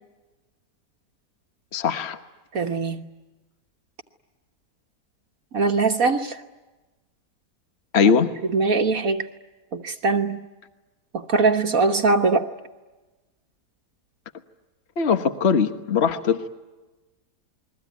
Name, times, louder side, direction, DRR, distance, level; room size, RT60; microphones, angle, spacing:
voice 1, 1.7-2.2 7.9-8.3 15.0-16.5, left 6 dB, 45° left, 1.5 m, -20 dB
voice 2, 2.5-3.0 5.5-6.4 8.5-9.3 9.7-10.5 11.1-12.5, right 3 dB, 60° right, 1.6 m, -21 dB
29.0 x 22.0 x 9.3 m
omnidirectional pair, 1.7 m